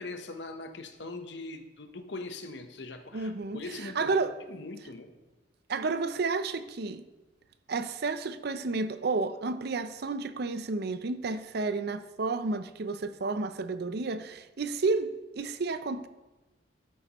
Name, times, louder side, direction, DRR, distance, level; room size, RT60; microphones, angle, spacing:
voice 1, 0.0-4.2 4.5-5.1, left 2 dB, 65° left, 0.9 m, -41 dB
voice 2, 3.1-4.4 5.7-7.0 7.7-16.1, right 3 dB, 60° right, 0.5 m, -31 dB
12.5 x 9.3 x 3.0 m
head